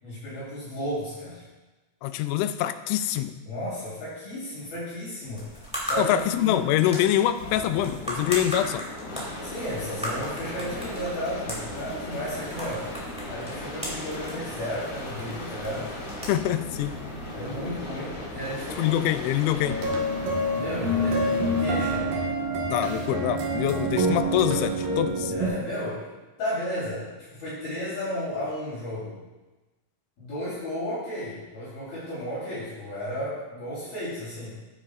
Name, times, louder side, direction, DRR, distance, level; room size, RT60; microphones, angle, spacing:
voice 1, 0.0-1.4 3.5-6.7 9.4-12.9 13.3-15.9 17.3-19.1 20.5-22.1 25.3-26.0 26.4-29.2 30.2-34.6, equal, 55° left, -10 dB, 5.3 m, -33 dB
voice 2, 2.0-3.4 6.0-8.8 16.3-17.0 18.8-19.8 22.7-25.3, left 12 dB, 90° left, 10 dB, 3.0 m, -25 dB
sound 1, 5.2-17.7, equal, ahead, 1.9 m, -38 dB
sound 2, 7.3-22.3 24.1-24.6, left 1 dB, 40° left, 1.8 m, -37 dB
sound 3, 19.6-25.5, right 1 dB, 60° right, 2.7 m, -27 dB
12.5 x 9.9 x 2.5 m, 1.1 s
omnidirectional pair, 5.3 m